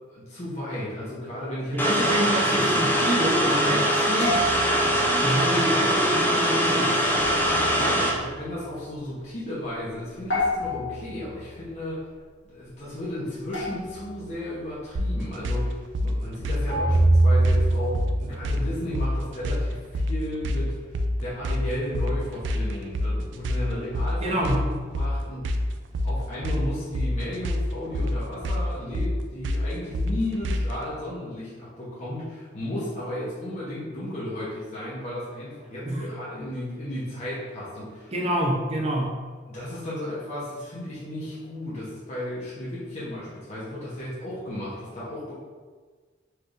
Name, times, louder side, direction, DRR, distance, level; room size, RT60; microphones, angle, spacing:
voice 1, 0.1-2.1 7.8-12.1 12.4-20.9 21.2-25.5 26.0-38.1 39.5-45.3, left 1 dB, 40° left, -9 dB, 0.9 m, -34 dB
voice 2, 1.7-4.4 5.2-7.0 24.2-24.7 35.8-36.1 38.1-39.2, right 1 dB, 35° right, 0 dB, 0.6 m, -27 dB
sound 1, 1.8-8.1, equal, 10° left, 0.5 m, -22 dB
sound 2, 4.2-5.1 7.1-8.7 10.3-11.6 13.5-14.6 16.7-18.8, right 1 dB, 75° left, 1.2 m, -25 dB
sound 3, 14.9-30.8, left 1 dB, 85° right, 0.4 m, -27 dB
4.4 x 3.3 x 2.5 m, 1.5 s
head